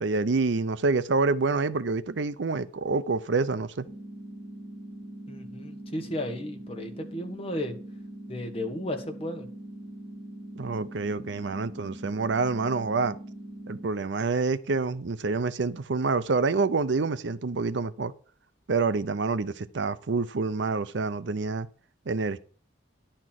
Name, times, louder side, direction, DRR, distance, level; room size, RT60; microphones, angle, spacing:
voice 1, 0.0-3.9 10.6-13.2 13.7-18.1 18.7-21.7 22.1-22.4, right 4 dB, 70° right, 0.6 m, -27 dB
sound 1, 3.9-13.9, right 1 dB, 15° right, 1.5 m, -42 dB
voice 2, 5.3-7.7 8.3-9.5, left 1 dB, 30° left, 1.5 m, -34 dB
11.0 x 4.4 x 7.5 m
head